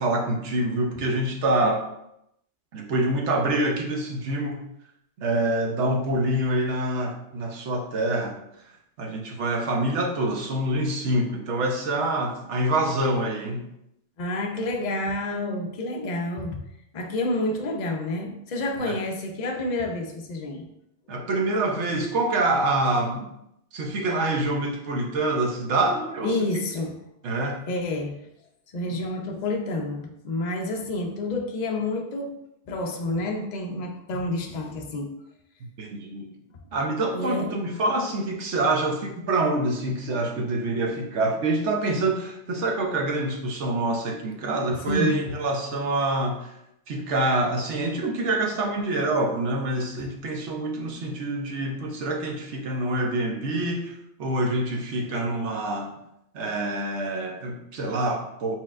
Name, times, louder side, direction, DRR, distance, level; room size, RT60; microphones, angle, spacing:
voice 1, 0.0-1.8 2.7-4.6 5.2-8.3 9.0-13.7 18.8-19.0 21.1-23.3 23.7-26.6 27.2-27.6 28.9-29.0 35.8-36.3 36.7-46.5 46.9-55.9 56.3-58.6, right 2 dB, 75° right, 2 dB, 1.0 m, -26 dB
voice 2, 14.2-16.6 16.9-20.7 26.2-26.9 27.7-28.2 28.7-32.3 32.7-35.1 37.1-37.5 44.7-45.2, left 2 dB, 50° left, 2 dB, 0.6 m, -29 dB
4.2 x 3.8 x 2.4 m, 0.80 s
omnidirectional pair, 1.2 m